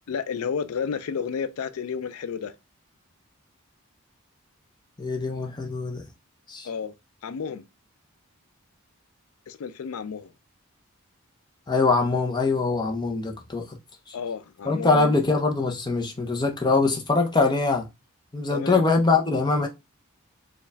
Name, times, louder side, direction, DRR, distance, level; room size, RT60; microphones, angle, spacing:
voice 1, 0.1-2.5 6.6-6.9 7.2-7.6 9.5-10.3 14.1-15.1 18.5-18.8, left 6 dB, 80° left, 0.4 m, -31 dB
voice 2, 5.0-6.0 6.5-6.7 11.7-13.8 14.1-14.2 14.6-17.9 18.3-19.7, left 3 dB, 20° left, 0.6 m, -23 dB
4.4 x 2.3 x 3.4 m
head